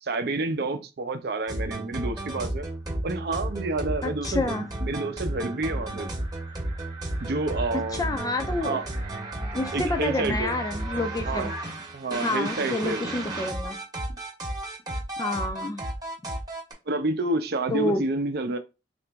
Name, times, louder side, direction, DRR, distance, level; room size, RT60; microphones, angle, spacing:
voice 1, 0.0-2.7 3.0-6.1 7.2-8.2 8.6-8.9 9.7-10.6 11.3-11.5 11.9-13.1 16.9-18.6, right 2 dB, 65° right, 0.5 m, -29 dB
sound 1, 1.5-16.7, right 1 dB, 20° right, 0.9 m, -33 dB
voice 2, 4.0-4.7 8.0-8.8 9.5-11.5 12.2-13.8 15.2-15.8 17.7-18.0, left 2 dB, 20° left, 0.4 m, -28 dB
2.9 x 2.4 x 3.4 m
head